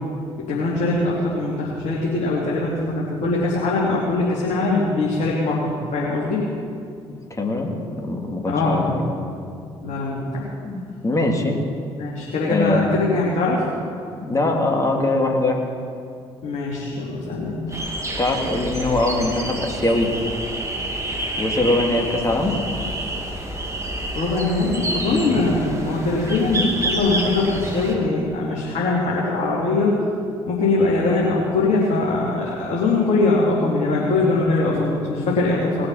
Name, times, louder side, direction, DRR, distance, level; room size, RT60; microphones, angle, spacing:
voice 1, 0.4-6.5 8.5-8.9 9.8-10.5 12.0-13.6 16.4-17.6 24.1-30.0 30.5-35.9, left 3 dB, 60° left, -6 dB, 2.9 m, -22 dB
voice 2, 7.3-7.7 8.0-9.2 10.6-11.6 12.3-12.9 14.2-15.6 18.2-20.1 21.4-22.5 25.1-25.4, left 2 dB, 25° left, 1 dB, 2.7 m, -22 dB
sound 1, 17.7-27.9, right 1 dB, 20° right, 2.8 m, -28 dB
20.0 x 6.8 x 5.7 m, 2.3 s
hypercardioid pair, 50°, 14 cm